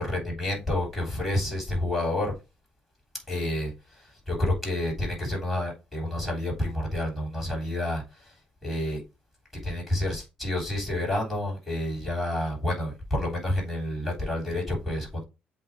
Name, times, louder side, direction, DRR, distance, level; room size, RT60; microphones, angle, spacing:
voice 1, 0.0-2.3 3.3-9.0 9.6-15.2, left 1 dB, ahead, 3.7 m, -29 dB
7.8 x 2.7 x 5.0 m
cardioid pair, 125°, 3 cm